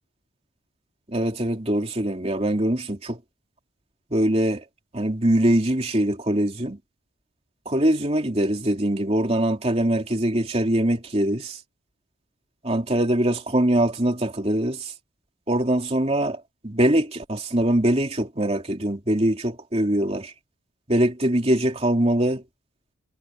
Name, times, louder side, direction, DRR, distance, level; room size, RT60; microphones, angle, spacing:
voice 1, 1.1-3.2 4.1-4.6 4.9-6.8 7.6-11.6 12.6-14.9 15.5-20.3 20.9-22.4, right 1 dB, 30° right, 3.0 m, -23 dB
head